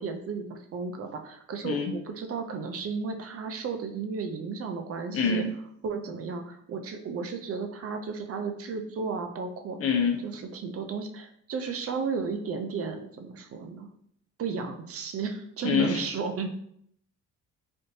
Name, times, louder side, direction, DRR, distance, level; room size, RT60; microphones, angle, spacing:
voice 1, 0.0-5.4 5.8-9.8 10.2-13.9 14.4-16.5, right 5 dB, 50° right, 5 dB, 0.5 m, -34 dB
voice 2, 5.1-5.5 9.8-10.2 15.6-16.0, left 5 dB, 50° left, 3 dB, 0.7 m, -25 dB
3.5 x 2.6 x 2.7 m, 0.68 s
cardioid pair, 90°, 30 cm